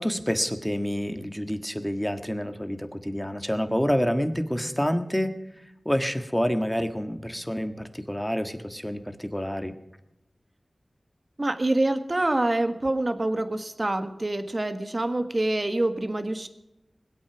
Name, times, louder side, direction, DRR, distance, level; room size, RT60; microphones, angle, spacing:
voice 1, 0.0-5.3 5.8-9.7, equal, 5° left, 8 dB, 1.5 m, -28 dB
voice 2, 11.4-16.5, right 2 dB, 45° right, 9 dB, 1.4 m, -26 dB
20.5 x 8.5 x 6.0 m, 0.92 s
wide cardioid pair, 40°, 0 cm